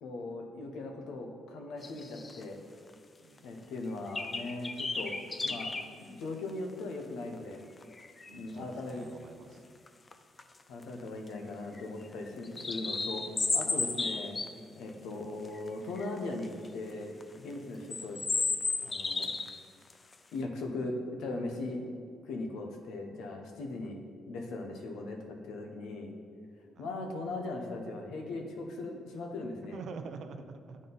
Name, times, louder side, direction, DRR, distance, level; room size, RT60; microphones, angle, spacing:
voice 1, 0.0-2.6 3.4-5.1 5.4-5.7 6.1-7.6 8.3-9.1 10.7-13.2 13.5-14.4 14.8-18.2 18.8-19.3 20.3-21.8 22.3-24.0 24.3-25.2 25.4-26.1 26.8-29.8, left 2 dB, 85° left, 3 dB, 0.9 m, -39 dB
sound 1, 1.8-2.4 2.9-3.0 3.4-3.5 4.1-5.9 6.5-6.6 7.8-8.4 9.9-10.1 10.4-10.5 10.8-11.3 11.7-14.5 15.4-15.7 16.0-16.7 17.2-17.3 17.9-19.6 19.9-20.1, left 3 dB, 30° left, 0.4 m, -33 dB
voice 2, 3.2-3.7 8.3-9.6 23.8-23.9 26.8-26.9 29.7-30.8, right 5 dB, 65° right, 7 dB, 0.5 m, -46 dB
9.4 x 3.8 x 3.9 m, 2.1 s
cardioid pair, 90°, 0 cm